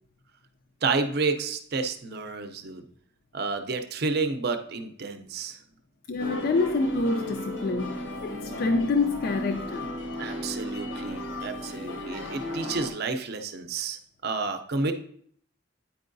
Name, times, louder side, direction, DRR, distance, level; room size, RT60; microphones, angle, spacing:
voice 1, 0.8-2.8 3.3-5.6 10.2-14.9, right 4 dB, 55° right, 0.6 m, -30 dB
voice 2, 6.1-9.9, left 3 dB, 55° left, 0.4 m, -27 dB
sound 1, 6.2-12.9, left 1 dB, 75° left, 1.0 m, -35 dB
9.2 x 4.6 x 2.6 m
head